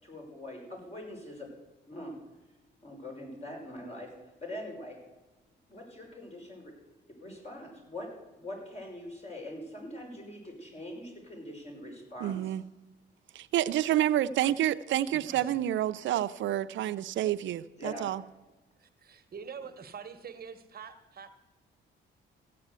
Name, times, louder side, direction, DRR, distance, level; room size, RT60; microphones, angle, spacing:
voice 1, 0.0-1.5 1.9-2.1 2.8-4.1 4.4-5.0 5.7-6.7 7.1-8.1 8.4-12.6 17.8-18.1, left 1 dB, 35° left, 0 dB, 5.8 m, -43 dB
voice 2, 12.2-12.6 13.3-18.2, right 12 dB, 70° right, 13 dB, 0.5 m, -29 dB
voice 3, 15.1-15.6 19.0-21.3, right 6 dB, 50° right, 8 dB, 1.2 m, -45 dB
15.5 x 8.6 x 8.1 m, 1.1 s
cardioid pair, 90°, 20 cm